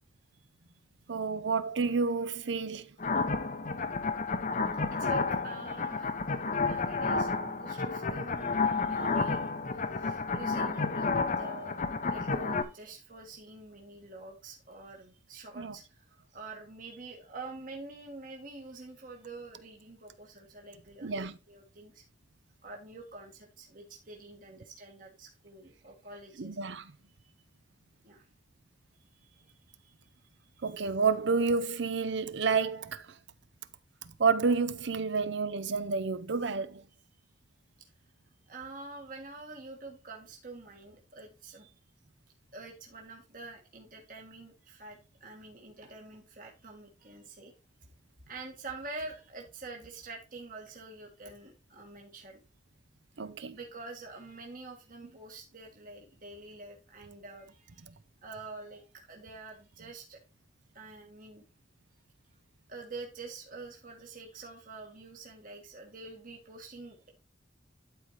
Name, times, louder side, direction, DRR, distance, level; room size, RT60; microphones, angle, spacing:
voice 1, 1.1-2.9 15.6-15.7 21.0-21.4 26.4-26.9 30.6-33.1 34.2-36.8 53.2-53.6, right 4 dB, 65° right, 0.6 m, -29 dB
sound 1, 3.0-12.6, left 4 dB, 40° left, 0.7 m, -31 dB
voice 2, 4.9-6.1 6.6-9.5 10.0-16.0 16.3-22.0 22.6-26.6 27.2-27.3 28.0-28.2 29.1-29.9 30.5-30.7 38.5-41.7 42.5-47.5 48.3-52.4 53.5-57.9 58.2-60.2 60.7-61.4 62.7-67.1, right 3 dB, 45° right, 1.7 m, -47 dB
12.0 x 4.5 x 3.2 m
head